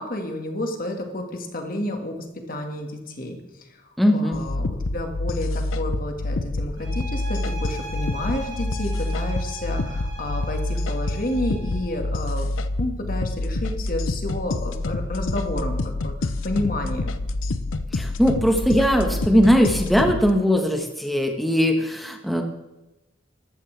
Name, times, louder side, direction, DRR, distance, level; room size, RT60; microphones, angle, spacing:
voice 1, 0.0-17.2, left 1 dB, 45° left, 4 dB, 1.9 m, -31 dB
voice 2, 4.0-4.4 17.9-22.4, equal, ahead, 3 dB, 1.4 m, -20 dB
sound 1, 4.3-20.3, left 2 dB, 90° left, 0.7 m, -27 dB
sound 2, 6.8-12.0, right 1 dB, 50° right, 5.6 m, -40 dB
14.0 x 13.0 x 3.4 m, 1.0 s
head